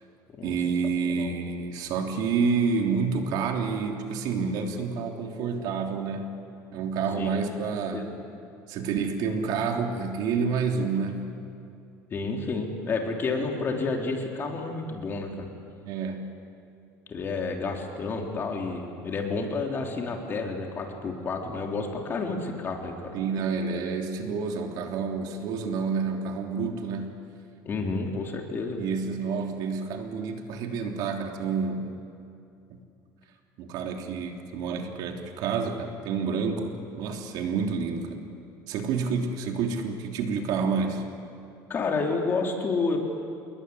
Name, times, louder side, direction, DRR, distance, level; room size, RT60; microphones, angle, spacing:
voice 1, 0.4-6.3 6.7-8.1 8.7-11.3 15.8-16.4 23.1-27.2 28.8-32.0 32.7-32.8 33.6-38.2 38.7-41.0, right 5 dB, 60° right, 3 dB, 3.3 m, -29 dB
voice 2, 1.0-1.3 7.2-7.3 7.7-8.1 12.1-15.5 17.1-23.1 27.6-28.8 41.7-43.0, left 3 dB, 30° left, 1 dB, 3.5 m, -30 dB
28.0 x 21.5 x 9.7 m, 2.6 s
cardioid pair, 155°, 8 cm